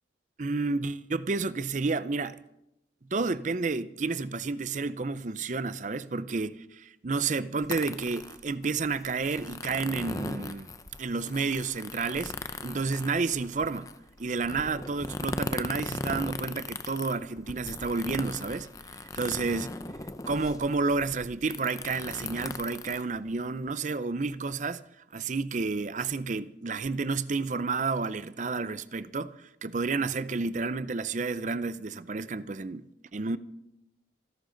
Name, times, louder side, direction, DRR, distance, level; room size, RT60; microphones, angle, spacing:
voice 1, 0.4-2.4 3.1-10.7 11.0-12.3 12.6-13.9 14.2-18.7 19.0-19.7 20.3-24.8 25.1-32.8 33.1-33.4, right 4 dB, 40° right, 0.5 m, -30 dB
sound 1, 7.6-23.7, left 2 dB, 20° left, 0.6 m, -38 dB
27.0 x 11.5 x 3.9 m
head